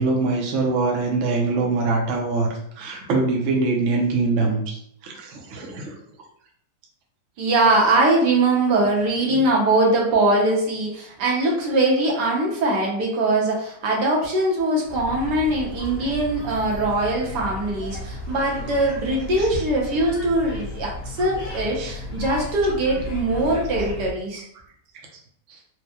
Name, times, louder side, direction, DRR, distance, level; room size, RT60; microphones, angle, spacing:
voice 1, 0.0-2.5 2.8-5.9 19.2-19.5 21.8-21.9 25.5-25.6, right 3 dB, 60° right, 0 dB, 0.8 m, -23 dB
voice 2, 7.4-24.4, right 2 dB, 75° right, -2 dB, 1.5 m, -21 dB
sound 1, 14.9-24.1, left 2 dB, 50° left, 1.7 m, -34 dB
4.5 x 2.1 x 2.8 m, 0.68 s
omnidirectional pair, 1.8 m